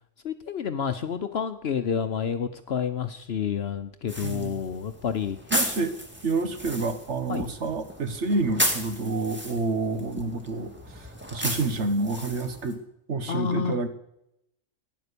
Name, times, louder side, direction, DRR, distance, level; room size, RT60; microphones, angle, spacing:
voice 1, 0.2-5.4 7.3-7.4 13.3-13.8, left 7 dB, 60° left, 9 dB, 1.0 m, -29 dB
sound 1, 4.1-12.8, equal, 10° right, 2.0 m, -34 dB
voice 2, 4.2-4.6 5.5-6.0 6.2-12.8 13.1-13.9, right 3 dB, 65° right, 9 dB, 1.6 m, -28 dB
15.0 x 10.5 x 6.8 m, 0.80 s
omnidirectional pair, 1.3 m